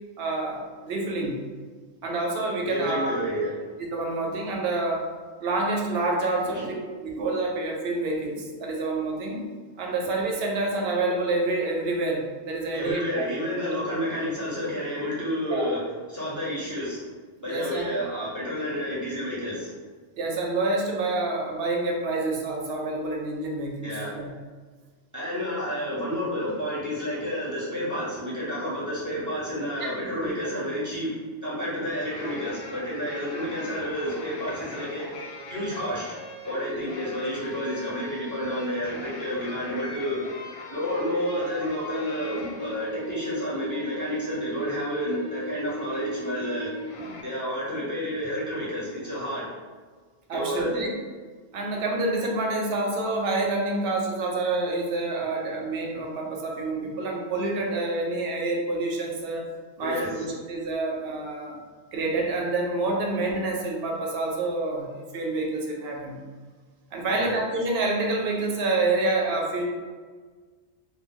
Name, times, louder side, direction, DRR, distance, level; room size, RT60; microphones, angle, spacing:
voice 1, 0.2-1.4 2.0-3.1 3.9-5.1 5.4-9.4 9.8-13.3 15.5-15.7 17.5-17.9 20.2-24.3 29.8-29.9 30.2-30.3 36.7-36.8 50.3-50.9 51.5-59.4 59.8-61.6 61.9-64.9 65.1-66.2 66.9-69.7, right 2 dB, 65° right, 0 dB, 0.8 m, -28 dB
voice 2, 2.6-3.6 6.5-6.7 12.7-15.8 16.1-17.0 17.4-19.7 23.8-24.2 25.1-35.2 35.5-40.2 40.7-46.7 47.2-49.5 50.3-50.9 59.8-60.2 67.1-67.4, equal, 20° right, -7 dB, 0.6 m, -30 dB
sound 1, 31.9-47.2, left 1 dB, 65° left, 0.7 m, -39 dB
2.2 x 2.0 x 3.7 m, 1.5 s
omnidirectional pair, 1.2 m